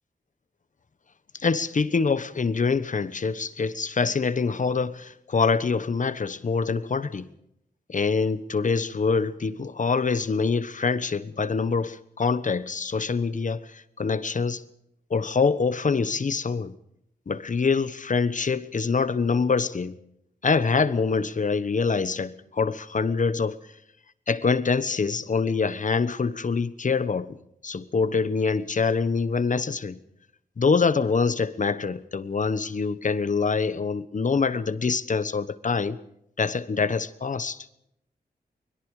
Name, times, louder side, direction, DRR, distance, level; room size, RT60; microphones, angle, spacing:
voice 1, 1.4-7.3 7.9-14.6 15.1-16.8 17.3-19.9 20.4-23.6 24.3-27.4 27.6-30.0 30.6-36.0 36.4-37.6, left 4 dB, 50° left, 1.2 m, -25 dB
24.0 x 22.0 x 5.0 m
wide cardioid pair, 105°, 17 cm